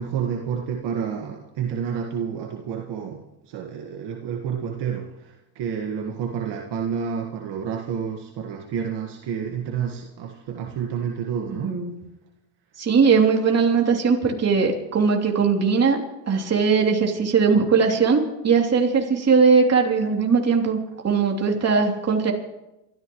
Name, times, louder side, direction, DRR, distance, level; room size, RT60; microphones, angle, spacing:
voice 1, 0.0-11.7, right 7 dB, 60° right, 1 dB, 1.7 m, -29 dB
voice 2, 11.5-11.9 12.8-16.0 16.3-20.8 21.0-22.3, right 5 dB, 35° right, 1 dB, 3.1 m, -19 dB
27.5 x 14.0 x 3.1 m, 0.96 s
supercardioid pair, 100°, 46 cm